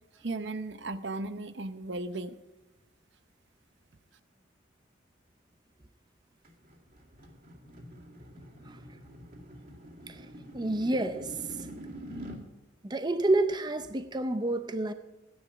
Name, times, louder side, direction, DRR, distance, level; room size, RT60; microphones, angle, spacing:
voice 1, 0.2-2.3, right 2 dB, 65° right, 11 dB, 0.8 m, -36 dB
sound 1, 6.4-12.4, equal, 50° right, 2.2 m, -46 dB
voice 2, 10.5-11.7 12.8-14.9, right 2 dB, 20° right, 9 dB, 0.6 m, -29 dB
14.5 x 10.5 x 5.9 m, 1.1 s
head